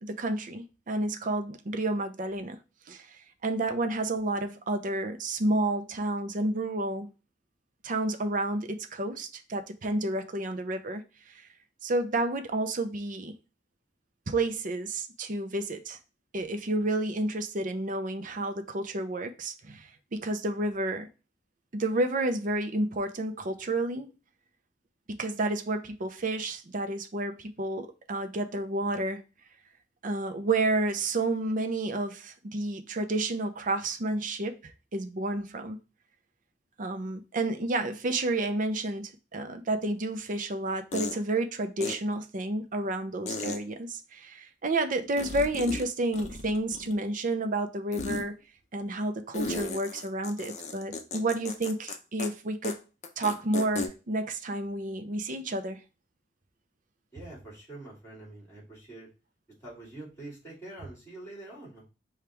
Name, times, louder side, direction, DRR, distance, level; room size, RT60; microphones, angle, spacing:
voice 1, 0.0-2.6 2.9-7.1 7.8-11.0 11.8-13.4 14.3-16.0 16.3-21.1 21.7-24.1 25.1-29.2 30.0-35.8 36.8-48.4 48.7-52.7 53.2-55.8, right 2 dB, 45° right, 0.6 m, -30 dB
sound 1, 40.0-40.1 40.9-41.2 41.8-41.9 43.3-43.6 45.2-45.9 46.1-47.0 47.9-48.2 49.3-51.9 52.2-52.3 52.6-52.7 53.0-53.9, left 3 dB, 40° left, 0.6 m, -35 dB
voice 2, 57.1-59.1 59.6-61.9, right 2 dB, 15° left, 2.5 m, -45 dB
5.1 x 2.4 x 4.3 m
head